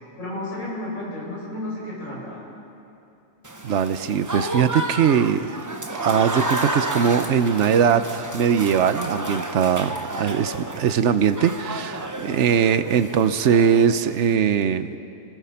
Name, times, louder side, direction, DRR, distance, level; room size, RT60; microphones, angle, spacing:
voice 1, 0.2-2.5, left 1 dB, 75° left, -6 dB, 7.8 m, -32 dB
Applause / Crowd, 3.4-14.3, right 1 dB, 15° right, 1.0 m, -31 dB
voice 2, 3.6-5.5 6.0-15.0, right 7 dB, 60° right, 11 dB, 1.1 m, -21 dB
28.5 x 20.5 x 5.8 m, 2.7 s
omnidirectional pair, 1.4 m